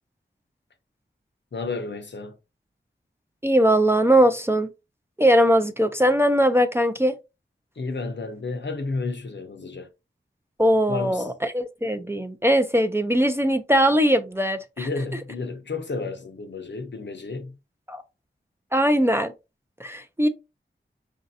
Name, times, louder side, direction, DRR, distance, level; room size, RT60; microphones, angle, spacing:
voice 1, 1.5-2.3 7.8-9.9 10.9-11.3 14.8-17.6, left 3 dB, 65° left, 0.7 m, -31 dB
voice 2, 3.4-4.7 5.2-7.1 10.6-14.9 17.9-18.0 18.7-19.3 19.8-20.3, equal, 10° right, 0.4 m, -20 dB
4.9 x 2.6 x 2.5 m
wide cardioid pair, 75°, 20 cm